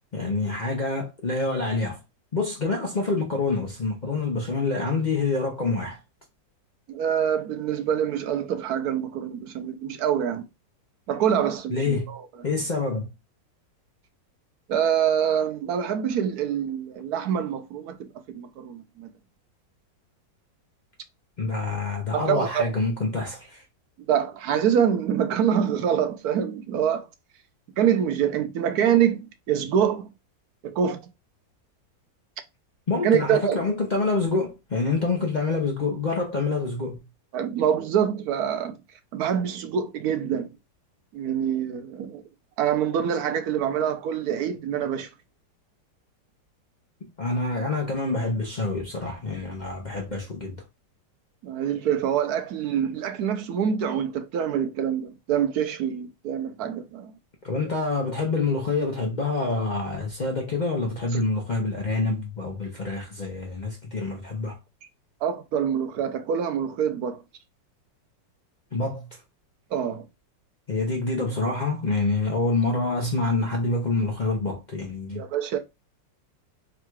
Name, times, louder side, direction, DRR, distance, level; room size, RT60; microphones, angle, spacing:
voice 1, 0.1-2.0 2.3-6.0 11.7-12.1 12.4-13.1 21.4-23.6 32.9-37.0 47.2-50.6 57.4-64.6 68.7-69.1 70.7-75.3, left 3 dB, 75° left, 0.4 m, -26 dB
voice 2, 6.9-10.4 11.1-12.2 14.7-18.1 18.3-19.1 22.1-22.6 24.1-27.1 27.8-29.2 29.5-30.1 30.6-31.0 33.0-33.6 37.3-38.8 39.1-40.5 41.1-42.2 42.6-45.1 51.4-57.1 65.2-67.2 69.7-70.0 75.1-75.6, right 8 dB, 65° right, 1.0 m, -25 dB
3.7 x 2.3 x 4.4 m
omnidirectional pair, 2.0 m